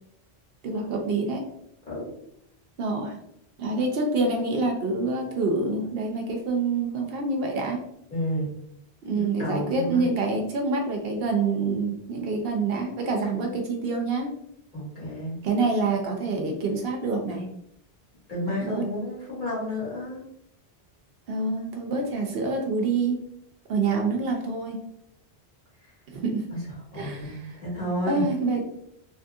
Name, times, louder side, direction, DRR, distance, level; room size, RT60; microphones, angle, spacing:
voice 1, 0.6-1.4 2.8-3.2 3.6-7.8 9.0-14.3 15.4-17.5 18.5-18.8 21.3-23.2 23.7-24.8 26.1-26.4 26.9-27.4 28.1-28.6, right 3 dB, 70° right, 2 dB, 0.8 m, -26 dB
voice 2, 1.9-2.2 8.1-8.5 9.1-10.1 14.7-15.4 18.3-20.2 25.8-25.9 26.5-26.6 26.9-28.3, left 1 dB, 50° left, -6 dB, 1.4 m, -31 dB
2.9 x 2.4 x 2.6 m, 0.75 s
omnidirectional pair, 1.1 m